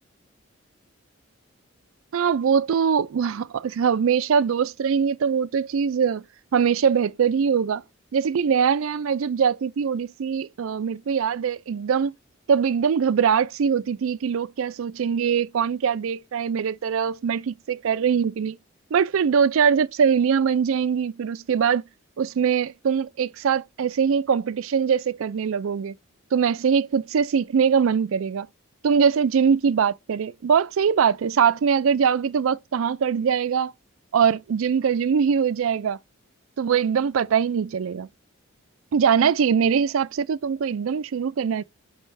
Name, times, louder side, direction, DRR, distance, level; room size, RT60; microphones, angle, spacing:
voice 1, 2.1-6.2 6.5-7.8 8.1-12.1 12.5-18.6 18.9-21.8 22.2-25.9 26.3-28.5 28.8-33.7 34.1-36.0 36.6-38.1 38.9-41.6, right 7 dB, 75° right, 0.4 m, -22 dB
5.4 x 3.3 x 5.5 m
head